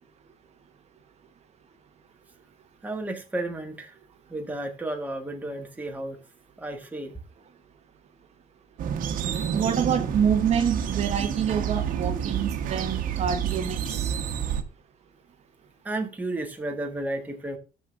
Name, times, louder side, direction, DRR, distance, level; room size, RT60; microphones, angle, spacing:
voice 1, 2.8-4.0 4.3-6.2 6.6-7.2 15.8-17.6, right 2 dB, 10° right, 1.5 m, -32 dB
sound 1, 8.8-14.6, right 8 dB, 70° right, 1.2 m, -29 dB
voice 2, 9.5-14.1, right 7 dB, 45° right, 1.0 m, -27 dB
17.5 x 6.2 x 2.5 m
cardioid pair, 135°, 15 cm